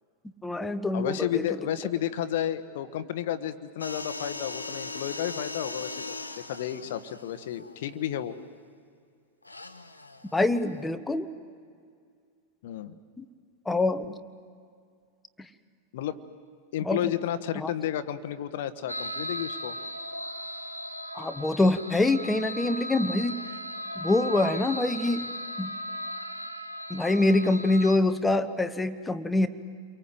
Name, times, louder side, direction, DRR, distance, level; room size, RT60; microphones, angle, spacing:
voice 1, 0.4-1.4 10.3-11.3 13.2-13.3 13.6-14.2 15.4-15.5 16.8-17.0 17.5-17.7 21.1-23.4 23.9-25.8 26.9-29.5, left 2 dB, 10° left, 10 dB, 1.2 m, -25 dB
voice 2, 0.9-8.4 12.6-12.9 15.9-16.2 16.7-19.8, left 11 dB, 55° left, 12 dB, 1.2 m, -32 dB
sound 1, 3.8-8.3 9.4-10.8, left 3 dB, 80° left, 1.2 m, -40 dB
sound 2, 18.9-28.0, equal, 90° right, 1.3 m, -37 dB
29.5 x 23.5 x 8.0 m, 2.2 s
figure-of-eight pair, 90°, 0 cm